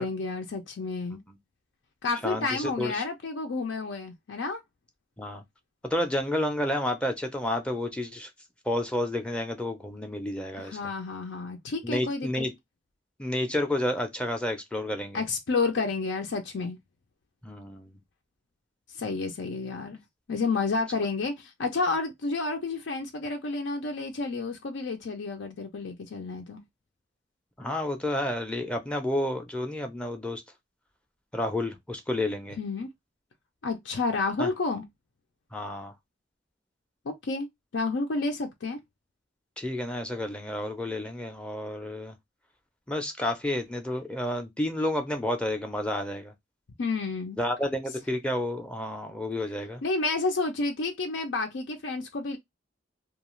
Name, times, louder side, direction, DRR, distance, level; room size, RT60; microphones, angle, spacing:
voice 1, 0.0-1.2 2.0-4.6 10.6-12.5 15.1-16.8 19.0-20.0 20.3-26.6 32.6-32.9 33.6-34.9 37.1-37.5 37.7-38.8 46.8-47.4 49.8-52.4, left 3 dB, 85° left, 0.5 m, -30 dB
voice 2, 2.2-2.9 5.2-5.4 5.8-8.3 8.7-10.8 11.8-12.5 13.2-15.2 17.4-17.9 27.6-30.4 31.3-32.6 34.4-34.5 35.5-35.9 39.6-42.1 42.9-46.3 47.4-49.8, left 1 dB, 5° left, 0.5 m, -30 dB
2.3 x 2.3 x 3.0 m
head